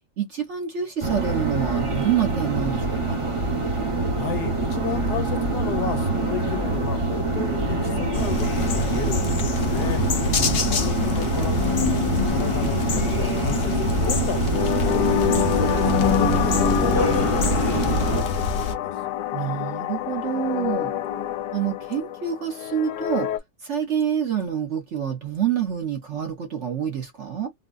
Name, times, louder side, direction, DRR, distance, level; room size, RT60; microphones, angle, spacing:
voice 1, 0.2-3.0 10.2-10.6 19.3-20.9 21.5-23.3 23.6-27.5, right 8 dB, 55° right, 0.9 m, -27 dB
sound 1, 1.0-18.2, right 3 dB, 25° right, 0.7 m, -25 dB
voice 2, 4.2-10.0 10.7-11.6 12.3-18.9, left 8 dB, 70° left, 1.3 m, -34 dB
sound 2, 5.6-23.4, left 10 dB, 85° left, 1.2 m, -28 dB
sound 3, 8.1-18.7, left 3 dB, 50° left, 0.7 m, -27 dB
3.7 x 2.3 x 2.4 m
omnidirectional pair, 1.9 m